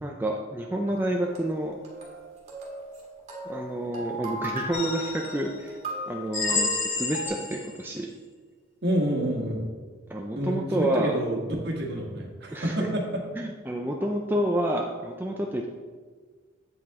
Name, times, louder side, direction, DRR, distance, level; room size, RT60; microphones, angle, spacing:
voice 1, 0.0-1.8 3.5-5.8 6.1-8.1 10.1-11.2 12.5-12.9 13.4-15.7, right 1 dB, 10° right, 1 dB, 0.4 m, -29 dB
sound 1, 0.9-7.3, right 1 dB, 35° right, 1.7 m, -38 dB
sound 2, 4.7-5.5 6.3-7.8, left 4 dB, 60° left, 2.5 m, -29 dB
voice 2, 8.8-9.7 10.3-13.2, right 1 dB, 55° right, 1 dB, 1.4 m, -28 dB
7.9 x 7.4 x 3.6 m, 1.5 s
head